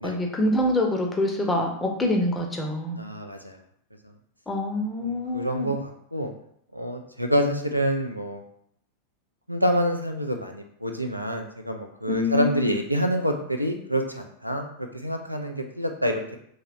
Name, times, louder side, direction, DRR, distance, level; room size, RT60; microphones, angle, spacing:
voice 1, 0.0-3.0 4.5-5.7 12.1-12.7, left 1 dB, 15° left, 1 dB, 0.6 m, -25 dB
voice 2, 3.0-3.6 5.0-6.3 6.7-8.4 9.5-16.4, equal, 90° right, 4 dB, 0.4 m, -27 dB
3.0 x 2.8 x 2.5 m, 0.68 s
figure-of-eight pair, 90°, 0 cm